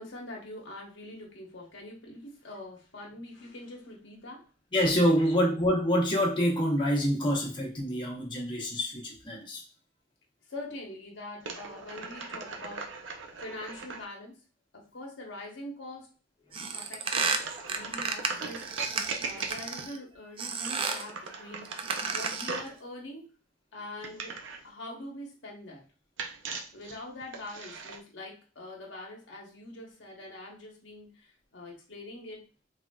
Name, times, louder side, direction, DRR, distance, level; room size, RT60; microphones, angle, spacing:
voice 1, 0.0-4.5 5.2-5.3 10.5-12.9 13.4-14.4 14.7-16.1 16.7-17.4 17.7-21.7 22.1-23.3 23.7-25.8 26.7-32.4, left 1 dB, 85° left, -1 dB, 1.0 m, -44 dB
voice 2, 4.7-9.6 16.6-16.7, equal, 25° left, -2 dB, 0.7 m, -26 dB
sound 1, 11.4-14.0 17.1-19.9 20.5-22.8 24.0-24.7 26.2-28.0, right 4 dB, 85° right, 0.5 m, -39 dB
sound 2, 16.5-20.0 20.4-21.1 21.6-22.6, right 5 dB, 30° right, 0.3 m, -32 dB
3.3 x 2.5 x 2.2 m, 0.35 s
head